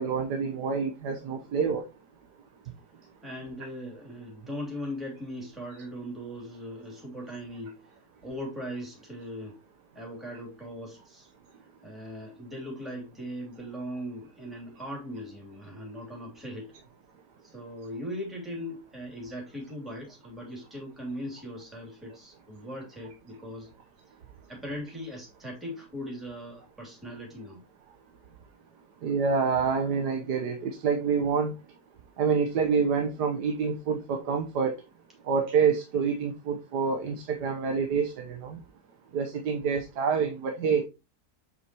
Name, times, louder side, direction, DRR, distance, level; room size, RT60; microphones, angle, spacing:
voice 1, 0.0-1.8 29.0-31.5 32.2-34.7 35.3-38.6 39.1-40.8, right 5 dB, 90° right, 1.6 m, -27 dB
voice 2, 3.2-9.6 9.9-11.3 11.8-16.7 17.4-23.7 24.5-27.6, equal, ahead, 2.9 m, -39 dB
8.1 x 5.7 x 2.9 m
omnidirectional pair, 1.7 m